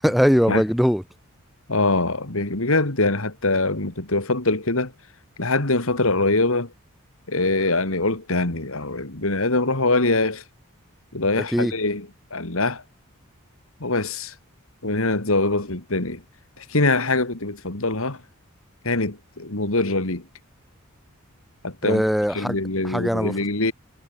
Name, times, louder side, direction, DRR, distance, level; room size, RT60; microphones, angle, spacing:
voice 1, 0.0-1.0 11.5-11.7 21.8-22.6 22.8-23.4, equal, ahead, 7.1 m, -20 dB
voice 2, 1.7-4.9 5.4-6.7 7.3-10.4 11.1-12.8 13.8-14.3 14.8-16.2 16.6-18.2 18.8-20.2 21.6-22.0 22.3-23.7, left 2 dB, 70° left, 2.7 m, -23 dB
head